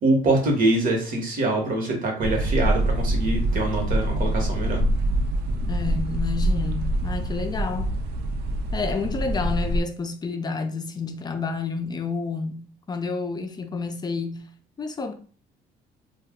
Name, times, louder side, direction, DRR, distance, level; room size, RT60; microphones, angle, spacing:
voice 1, 0.0-4.8, right 2 dB, 55° right, 1.1 m, -24 dB
sound 1, 2.2-9.8, right 1 dB, 75° right, 0.4 m, -25 dB
voice 2, 5.7-7.9 8.7-14.5 14.8-15.1, left 4 dB, 25° left, 0.4 m, -30 dB
2.3 x 2.1 x 3.5 m
cardioid pair, 110°, 17 cm